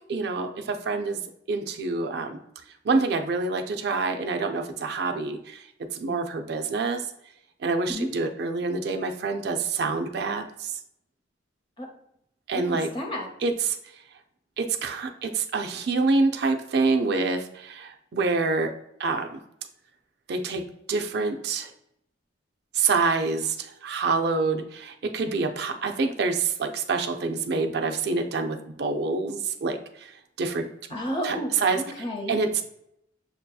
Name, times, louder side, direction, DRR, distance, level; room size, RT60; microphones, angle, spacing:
voice 1, 0.1-1.2 1.5-2.4 2.9-5.6 5.9-7.0 7.6-10.7 12.5-12.9 13.4-13.8 14.6-18.7 19.0-19.4 20.3-20.6 20.9-21.7 22.7-29.8 30.4-30.7 31.2-31.8 32.3-32.6, right 4 dB, 55° right, 5 dB, 0.4 m, -26 dB
voice 2, 12.5-13.3 30.9-32.4, equal, 25° left, 1 dB, 0.8 m, -32 dB
6.5 x 2.7 x 2.2 m, 0.76 s
head